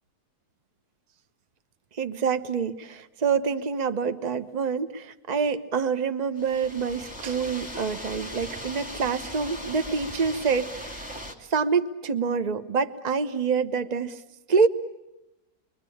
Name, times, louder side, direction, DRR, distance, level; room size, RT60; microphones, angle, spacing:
voice 1, 2.0-11.1 11.5-14.2 14.5-14.7, right 5 dB, 30° right, 10 dB, 1.0 m, -26 dB
sound 1, 6.4-11.3, equal, 5° right, 2.5 m, -39 dB
28.0 x 23.0 x 8.6 m, 0.93 s
omnidirectional pair, 1.8 m